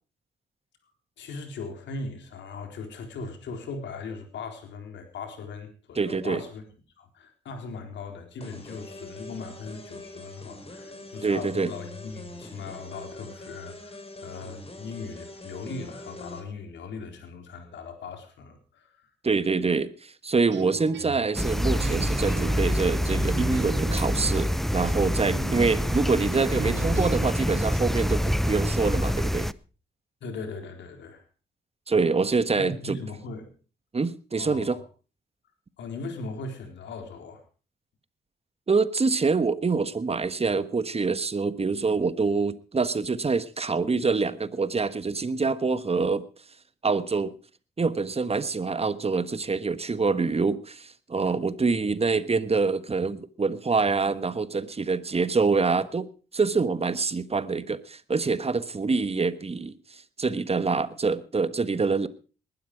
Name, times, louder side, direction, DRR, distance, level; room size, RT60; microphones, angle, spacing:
voice 1, 1.2-6.6 7.0-19.1 30.2-31.2 32.5-33.5 34.3-34.8 35.8-37.4, left 4 dB, 80° left, 4.0 m, -39 dB
voice 2, 6.0-6.4 11.2-11.7 19.2-29.5 31.9-33.0 33.9-34.8 38.7-46.3 46.8-47.3 47.8-56.1 56.3-62.1, right 4 dB, 35° right, 1.3 m, -25 dB
sound 1, 8.4-16.4, left 1 dB, 30° left, 5.2 m, -43 dB
sound 2, 20.5-27.3, right 6 dB, 70° right, 2.4 m, -38 dB
sound 3, 21.3-29.5, equal, ahead, 0.7 m, -26 dB
20.0 x 12.0 x 4.8 m
supercardioid pair, 55°, 19 cm